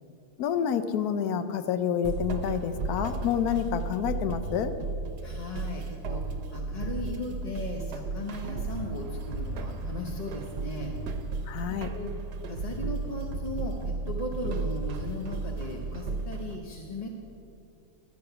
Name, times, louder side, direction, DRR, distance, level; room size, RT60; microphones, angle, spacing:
voice 1, 0.4-4.7 11.5-11.9, left 8 dB, 75° left, 10 dB, 1.1 m, -28 dB
sound 1, 2.0-16.6, right 3 dB, 85° right, 1.3 m, -34 dB
voice 2, 5.2-11.0 11.9-12.1 12.5-17.1, left 2 dB, 35° left, 1 dB, 0.7 m, -37 dB
12.5 x 8.5 x 5.7 m, 2.7 s
omnidirectional pair, 1.7 m